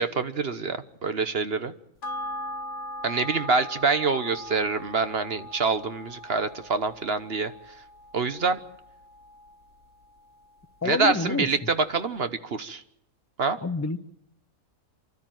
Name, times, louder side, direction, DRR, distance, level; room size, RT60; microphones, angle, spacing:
voice 1, 0.0-1.7 3.0-7.5 8.1-8.6 10.8-12.8 13.4-13.6, right 4 dB, 45° right, 11 dB, 1.2 m, -26 dB
sound 1, 2.0-10.8 11.1-11.2, left 1 dB, 55° left, 1.6 m, -40 dB
voice 2, 10.8-11.7 13.6-14.0, left 3 dB, 15° left, 9 dB, 0.8 m, -28 dB
29.0 x 12.5 x 9.2 m, 0.76 s
omnidirectional pair, 1.5 m